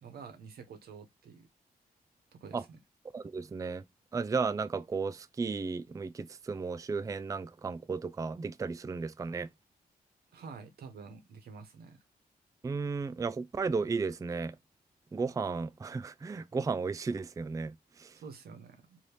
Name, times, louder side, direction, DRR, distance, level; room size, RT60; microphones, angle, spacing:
voice 1, 0.0-1.5 2.4-2.8 10.3-12.0 18.1-19.0, right 5 dB, 90° right, 0.8 m, -48 dB
voice 2, 3.1-3.8 4.1-9.5 12.6-14.6 15.1-18.1, right 4 dB, 20° right, 0.3 m, -34 dB
2.7 x 2.7 x 3.2 m
cardioid pair, 60°, 16 cm